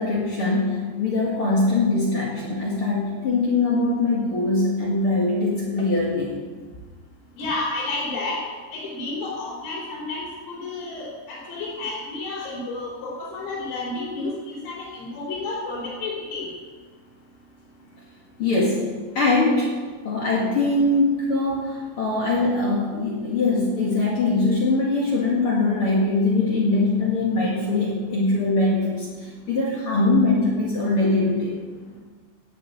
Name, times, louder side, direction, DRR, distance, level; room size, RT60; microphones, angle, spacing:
voice 1, 0.0-6.3 18.4-18.9 19.1-19.7 20.0-31.6, left 2 dB, 55° left, -4 dB, 1.5 m, -22 dB
voice 2, 7.4-8.4 8.7-16.5, left 2 dB, 90° left, -8 dB, 6.6 m, -31 dB
19.5 x 6.7 x 8.3 m, 1.5 s
omnidirectional pair, 5.8 m